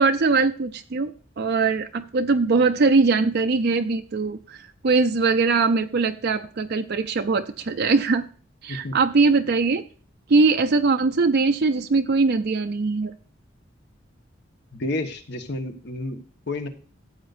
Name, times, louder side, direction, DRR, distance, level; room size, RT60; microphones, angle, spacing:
voice 1, 0.0-8.2 8.6-9.8 10.3-13.1, right 4 dB, 55° right, 7 dB, 0.5 m, -21 dB
voice 2, 14.7-16.7, left 2 dB, 60° left, 7 dB, 1.3 m, -31 dB
13.5 x 8.1 x 2.6 m, 0.40 s
head